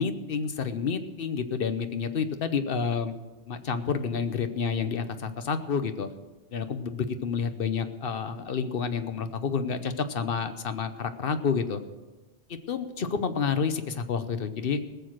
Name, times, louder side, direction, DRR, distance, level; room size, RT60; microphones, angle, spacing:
voice 1, 0.0-3.1 3.5-6.1 6.5-11.8 12.7-14.8, left 6 dB, 60° left, 10 dB, 1.0 m, -29 dB
19.5 x 6.9 x 6.2 m, 1.2 s
omnidirectional pair, 1.1 m